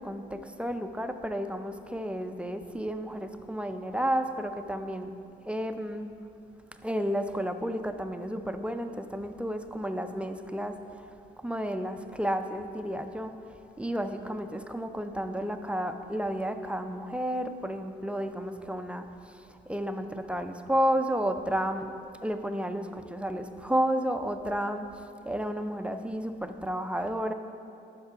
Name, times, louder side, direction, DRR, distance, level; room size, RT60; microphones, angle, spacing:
voice 1, 0.0-5.1 5.5-6.1 6.8-11.1 11.4-21.9 22.2-27.3, equal, 5° right, 7 dB, 0.3 m, -32 dB
5.9 x 5.5 x 5.7 m, 2.6 s
cardioid pair, 90°, 20 cm